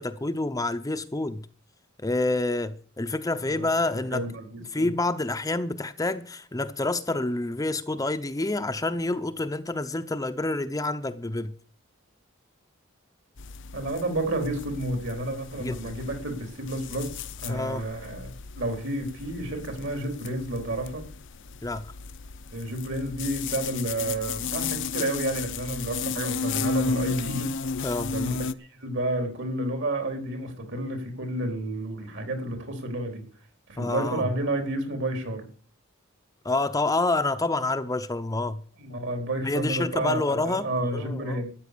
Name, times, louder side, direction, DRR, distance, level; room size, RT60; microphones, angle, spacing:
voice 1, 0.0-1.4 2.0-4.3 4.7-11.5 15.6-15.9 17.5-17.9 21.6-21.9 27.8-28.1 33.8-34.3 36.4-38.6 39.4-41.4, left 2 dB, 15° left, 0.7 m, -28 dB
voice 2, 3.5-4.9 13.7-17.1 17.4-21.0 22.5-27.5 28.1-33.2 33.7-35.4 38.8-41.5, right 1 dB, 65° right, 4.1 m, -31 dB
sound 1, 13.4-28.5, left 5 dB, 65° left, 0.7 m, -34 dB
13.5 x 9.7 x 6.8 m
head